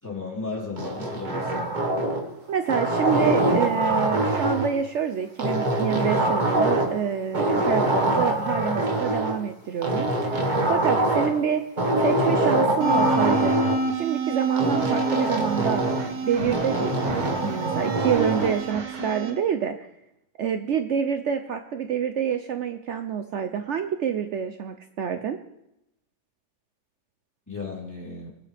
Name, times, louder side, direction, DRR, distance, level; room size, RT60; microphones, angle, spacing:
voice 1, 0.0-1.7 27.5-28.3, left 3 dB, 10° left, -4 dB, 3.7 m, -34 dB
sound 1, 0.8-2.3 2.7-4.8 5.4-7.0 7.3-9.3 9.8-11.4 11.8-13.8 14.6-16.1 16.5-18.6, right 1 dB, 25° right, 1.6 m, -24 dB
voice 2, 2.5-11.6 12.0-13.6 13.9-19.9 20.4-25.4, right 7 dB, 70° right, 7 dB, 0.6 m, -27 dB
sound 2, 12.8-19.3, right 3 dB, 55° right, 1.8 m, -29 dB
22.0 x 10.0 x 3.4 m, 0.86 s
omnidirectional pair, 2.0 m